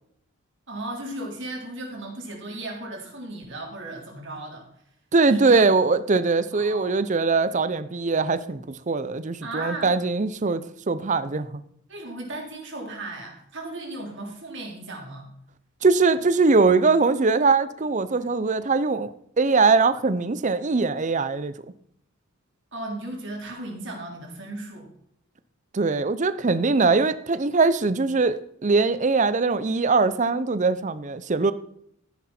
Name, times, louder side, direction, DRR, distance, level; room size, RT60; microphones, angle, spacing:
voice 1, 0.7-4.7 5.3-5.7 6.5-6.9 9.4-9.9 11.9-15.3 22.7-24.9, right 2 dB, 55° right, 0 dB, 3.5 m, -36 dB
voice 2, 5.1-11.6 15.8-21.5 25.7-31.5, right 4 dB, 35° right, 14 dB, 0.5 m, -21 dB
14.0 x 10.0 x 4.3 m, 0.71 s
head